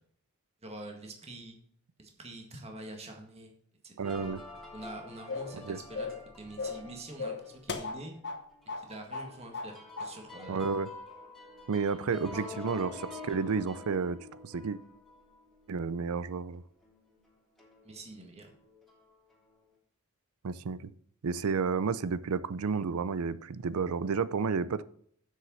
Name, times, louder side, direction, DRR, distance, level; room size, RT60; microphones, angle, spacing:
voice 1, 0.6-1.6 2.0-3.5 3.8-4.4 4.7-8.1 8.8-10.7 11.4-11.7 12.4-12.9 17.8-18.5, right 1 dB, 30° right, 2 dB, 1.7 m, -46 dB
sound 1, 4.0-7.7 8.2-8.3 8.6-16.6 16.8-17.1 17.6-18.0 18.5-19.2, left 2 dB, ahead, 2.9 m, -47 dB
voice 2, 4.0-4.4 5.5-5.8 10.5-10.9 11.7-12.9 13.2-14.8 15.7-16.6 20.4-20.9 21.2-24.8, right 5 dB, 75° right, 17 dB, 0.5 m, -31 dB
sound 2, 5.3-5.6 5.9-6.3 6.6-6.9 7.2-8.4 8.7-8.9 9.1-9.7 10.0-10.1, left 4 dB, 55° left, 1.1 m, -36 dB
7.7 x 6.4 x 6.1 m, 0.64 s
head